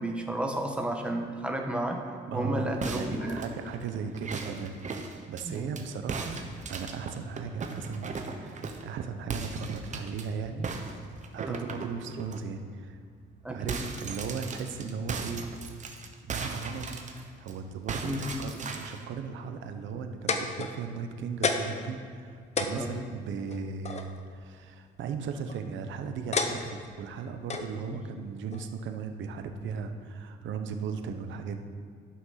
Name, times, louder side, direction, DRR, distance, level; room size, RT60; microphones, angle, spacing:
voice 1, 0.0-2.0 2.3-3.4 5.4-5.8 11.5-11.7 13.4-13.8 18.0-18.3 22.7-23.0 27.9-28.0, right 1 dB, 5° right, 2 dB, 1.2 m, -32 dB
voice 2, 2.3-4.8 5.3-6.4 6.7-10.7 11.3-13.0 13.5-15.5 16.3-31.6, right 5 dB, 75° right, 7 dB, 0.9 m, -37 dB
sound 1, 2.8-5.8 6.1-8.9 9.3-10.2 10.6-12.4 12.8-12.9 13.2-17.5 17.9-19.0, right 4 dB, 40° right, 1.0 m, -38 dB
sound 2, 19.9-21.0 21.4-21.9 22.2-22.3 22.6-24.1 25.2-25.6 26.3-26.9 27.5-27.7 28.5-28.6, left 4 dB, 35° left, 0.8 m, -30 dB
11.0 x 6.0 x 5.8 m, 2.1 s
cardioid pair, 120°, 20 cm